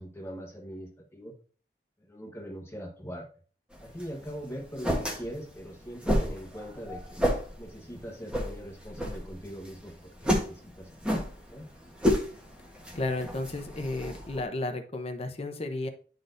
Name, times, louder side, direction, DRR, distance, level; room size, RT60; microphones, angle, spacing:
voice 1, 0.0-1.3 2.0-3.3 3.8-7.2 7.6-11.7, equal, 15° left, 0 dB, 1.2 m, -42 dB
sound 1, 3.7-14.4, equal, 5° right, 1.2 m, -32 dB
voice 2, 12.9-15.9, left 2 dB, 35° left, 6 dB, 0.9 m, -33 dB
10.5 x 4.1 x 2.6 m, 0.40 s
head